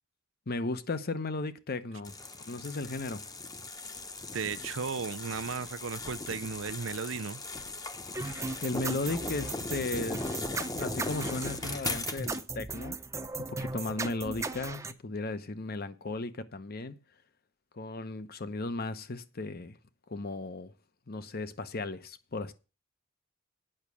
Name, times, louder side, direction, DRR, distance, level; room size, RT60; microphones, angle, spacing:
voice 1, 0.5-2.1 2.4-3.2 8.6-13.0 13.5-16.9 17.7-19.8 20.1-20.7 21.1-22.5, left 2 dB, 50° left, 0.9 m, -36 dB
sound 1, 2.0-12.4, left 3 dB, 20° left, 0.9 m, -39 dB
voice 2, 4.3-7.4, right 5 dB, 70° right, 0.6 m, -35 dB
sound 2, 8.1-14.9, right 3 dB, 15° right, 0.7 m, -37 dB
8.9 x 6.1 x 8.4 m
head